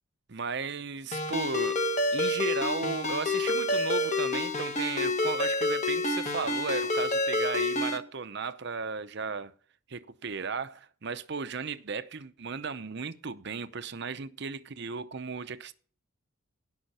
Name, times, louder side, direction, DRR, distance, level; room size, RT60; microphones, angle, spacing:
voice 1, 0.3-1.8 2.1-9.5 9.9-15.7, right 5 dB, 50° right, 0.7 m, -35 dB
Ringtone, 1.1-8.0, left 2 dB, 30° left, 1.1 m, -28 dB
17.0 x 5.8 x 4.2 m
head